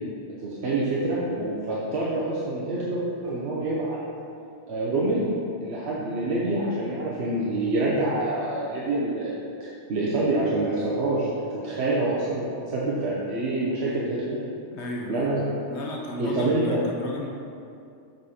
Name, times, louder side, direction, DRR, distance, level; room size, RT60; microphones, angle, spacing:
voice 1, 0.4-4.0 4.7-5.3 5.6-14.4 15.1-15.5 16.2-16.8, right 2 dB, 65° right, -6 dB, 1.1 m, -26 dB
voice 2, 14.7-15.3 15.6-17.3, left 2 dB, 65° left, -1 dB, 1.2 m, -33 dB
6.5 x 4.2 x 4.9 m, 2.5 s
omnidirectional pair, 1.2 m